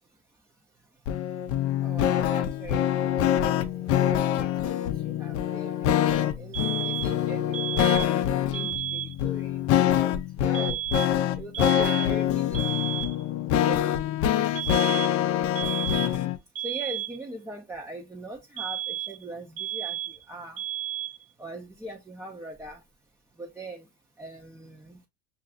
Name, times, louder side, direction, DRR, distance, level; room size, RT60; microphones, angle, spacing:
sound 1, 1.1-16.4, left 11 dB, 45° left, 0.5 m, -25 dB
voice 1, 1.8-3.1 3.5-10.8 11.3-12.9 13.7-15.8 16.6-20.0 20.3-20.6 21.4-22.8 23.4-23.9 24.2-25.0, right 1 dB, 10° right, 0.6 m, -41 dB
sound 2, 6.5-7.2 7.5-8.2 8.5-9.2 10.5-11.2 11.5-12.2 12.5-13.2 14.6-15.2 15.6-16.2 16.6-17.2 18.6-19.2 19.6-20.2 20.6-21.2, right 12 dB, 45° right, 0.9 m, -33 dB
5.5 x 2.5 x 2.4 m
hypercardioid pair, 90°, 34 cm